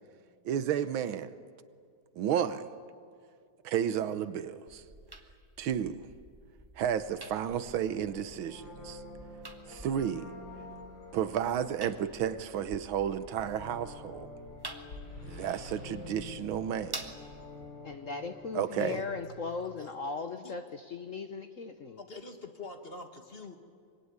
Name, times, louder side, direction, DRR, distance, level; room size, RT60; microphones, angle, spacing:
voice 1, 0.5-1.3 2.2-2.7 3.6-4.8 5.6-6.0 6.8-9.0 9.7-10.3 11.1-14.3 15.2-17.1 18.5-19.0, right 9 dB, 85° right, 1.8 m, -32 dB
sound 1, 4.7-17.7, right 2 dB, 15° right, 1.0 m, -49 dB
sound 2, 7.5-19.5, left 2 dB, 65° left, 4.0 m, -48 dB
voice 2, 17.8-22.0, left 4 dB, 50° left, 1.0 m, -38 dB
voice 3, 18.8-19.1 19.6-20.0 20.3-20.5 22.0-23.6, left 3 dB, 30° left, 1.8 m, -45 dB
24.5 x 22.5 x 9.6 m
omnidirectional pair, 2.2 m